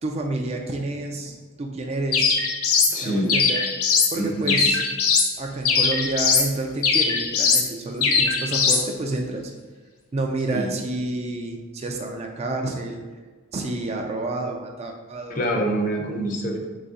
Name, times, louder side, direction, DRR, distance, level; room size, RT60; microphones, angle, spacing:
voice 1, 0.0-2.4 3.0-3.6 4.1-4.8 5.4-9.5 10.1-13.0 13.5-15.4, right 2 dB, 30° right, 2 dB, 0.3 m, -29 dB
sound 1, 2.1-2.9 3.3-4.1 4.5-5.3 5.6-6.5 6.8-7.7 8.0-8.8, left 5 dB, 75° left, 0.6 m, -20 dB
voice 2, 2.9-3.3 4.1-4.7 10.5-10.7 15.3-16.6, right 1 dB, 35° left, 1 dB, 0.6 m, -26 dB
4.0 x 3.2 x 3.6 m, 1.4 s
head